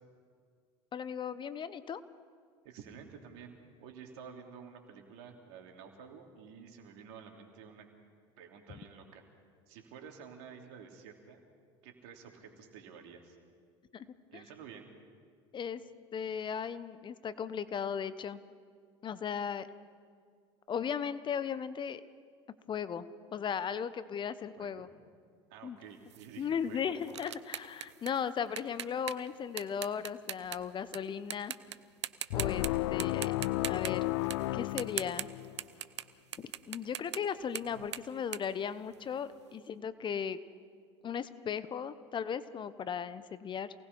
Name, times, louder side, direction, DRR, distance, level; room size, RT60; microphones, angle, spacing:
voice 1, 0.9-2.0 13.9-14.1 14.3-14.4 15.5-15.8 16.1-18.4 19.0-19.7 20.7-22.0 22.7-24.9 25.6-25.8 26.4-31.5 32.3-34.0 34.5-35.3 36.4-40.4 41.0-43.7, left 7 dB, 35° left, 15 dB, 1.0 m, -37 dB
voice 2, 2.6-3.5 3.8-7.9 8.4-9.2 9.7-11.4 11.8-13.4 14.3-14.9 24.6-24.9 25.5-27.1, right 7 dB, 65° right, 3 dB, 3.3 m, -51 dB
sound 1, 26.1-31.0 31.3-31.8 32.0-32.7 33.0-39.3, right 11 dB, 85° right, 0.7 m, -41 dB
sound 2, 32.3-35.7, left 18 dB, 70° left, 0.5 m, -33 dB
28.0 x 18.5 x 5.6 m, 2.1 s
hypercardioid pair, 80°, 14 cm